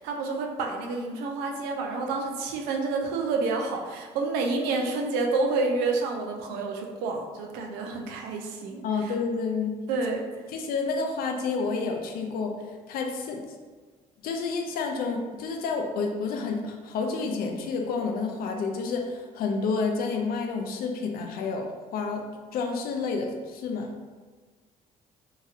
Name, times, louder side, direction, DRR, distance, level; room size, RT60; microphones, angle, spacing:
voice 1, 0.0-9.1 9.9-10.2, right 3 dB, 85° right, 1 dB, 0.5 m, -29 dB
voice 2, 8.8-9.7 10.5-13.4 14.2-23.9, left 4 dB, 70° left, 3 dB, 0.5 m, -30 dB
2.9 x 2.8 x 2.4 m, 1.4 s
supercardioid pair, 65°, 16 cm